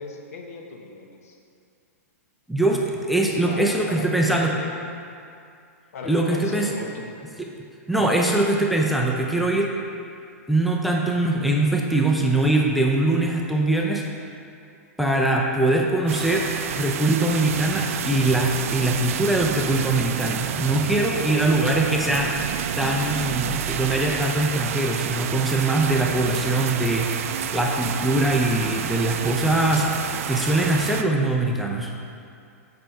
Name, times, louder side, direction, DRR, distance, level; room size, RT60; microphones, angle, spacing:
voice 1, 0.0-1.4 3.4-4.7 5.9-7.1 7.9-8.2 21.1-21.6, left 4 dB, 70° left, 2 dB, 1.1 m, -36 dB
voice 2, 2.5-4.5 6.1-6.7 7.9-9.7 10.5-14.0 15.0-16.5 16.8-22.3 22.8-29.9 30.3-31.9, right 2 dB, ahead, -1 dB, 0.5 m, -22 dB
sound 1, 16.1-31.0, right 9 dB, 60° right, 0.4 m, -29 dB
7.7 x 5.6 x 4.6 m, 2.4 s
hypercardioid pair, 140°, 8 cm